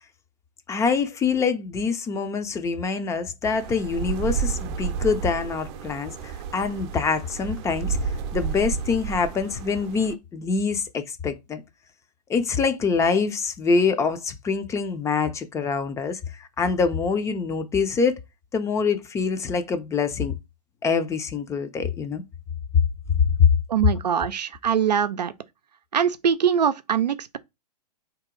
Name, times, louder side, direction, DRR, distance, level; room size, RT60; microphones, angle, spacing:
voice 1, 0.7-11.6 12.3-18.1 18.5-20.3 20.8-22.2 23.4-23.5, left 5 dB, 15° left, 0.5 m, -25 dB
sound 1, 3.4-10.1, right 7 dB, 40° right, 0.7 m, -31 dB
voice 2, 23.7-25.3 25.9-27.4, right 8 dB, 90° right, 0.5 m, -23 dB
4.0 x 2.9 x 3.7 m
hypercardioid pair, 120°, 21 cm